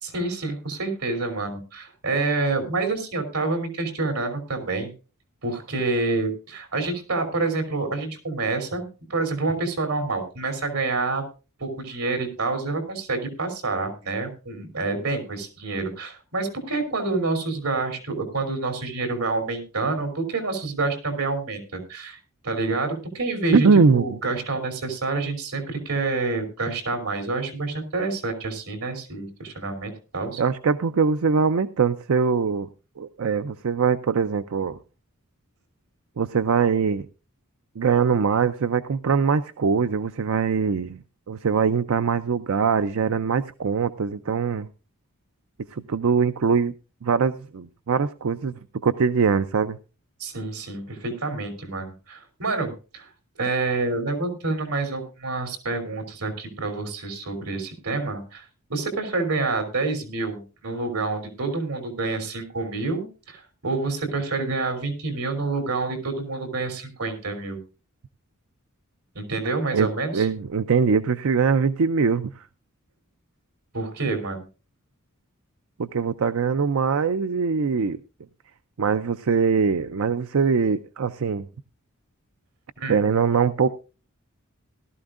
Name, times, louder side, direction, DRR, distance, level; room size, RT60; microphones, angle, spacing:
voice 1, 0.0-4.9 5.4-11.2 11.6-30.4 50.2-53.1 53.4-67.6 69.1-70.3 73.7-74.4 82.8-83.0, right 3 dB, 80° right, 7 dB, 3.2 m, -28 dB
voice 2, 23.5-24.0 30.4-32.7 33.0-34.8 36.2-37.1 37.8-41.0 41.3-44.7 45.7-46.7 47.0-48.5 48.8-49.8 69.7-72.4 75.8-78.0 78.8-81.5 82.9-83.7, right 5 dB, 65° right, 12 dB, 0.5 m, -22 dB
18.0 x 12.5 x 2.5 m, 0.33 s
head